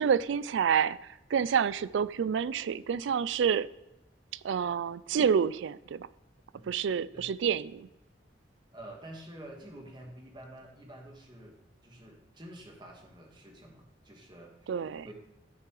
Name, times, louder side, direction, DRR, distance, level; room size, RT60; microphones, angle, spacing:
voice 1, 0.0-3.7 4.4-6.1 6.7-7.9 14.7-15.1, right 7 dB, 85° right, 0.3 m, -28 dB
voice 2, 8.7-15.1, right 1 dB, 25° right, 1.6 m, -49 dB
12.5 x 6.7 x 3.2 m
head